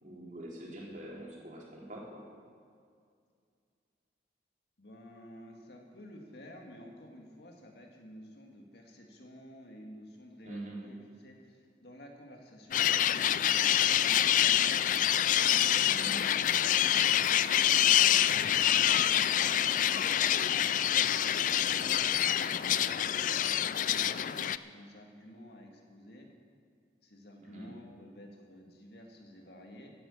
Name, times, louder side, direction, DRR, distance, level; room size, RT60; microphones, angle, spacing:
voice 1, 0.0-2.2 10.4-10.8 15.8-16.2 21.6-22.0 27.4-27.7, right 1 dB, 45° right, -3 dB, 3.3 m, -45 dB
voice 2, 4.8-14.7 15.8-20.7 21.3-26.3 27.0-29.9, equal, 65° left, 1 dB, 2.1 m, -51 dB
sound 1, 12.7-24.6, left 11 dB, 50° left, 0.3 m, -26 dB
sound 2, 17.6-22.6, left 4 dB, 30° left, 1.0 m, -51 dB
15.0 x 8.9 x 7.3 m, 2.2 s
head